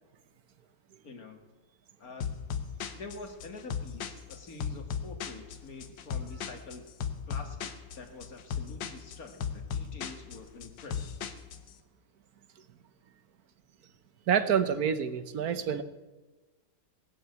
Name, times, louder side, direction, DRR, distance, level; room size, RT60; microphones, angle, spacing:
voice 1, 1.0-1.4 2.0-2.3 2.9-6.8 7.3-11.0, left 3 dB, 50° left, 5 dB, 2.4 m, -46 dB
sound 1, 2.2-11.7, left 6 dB, 80° left, 1.7 m, -36 dB
voice 2, 14.3-15.8, right 7 dB, 60° right, 12 dB, 1.3 m, -27 dB
19.0 x 8.2 x 8.1 m, 1.2 s
omnidirectional pair, 2.0 m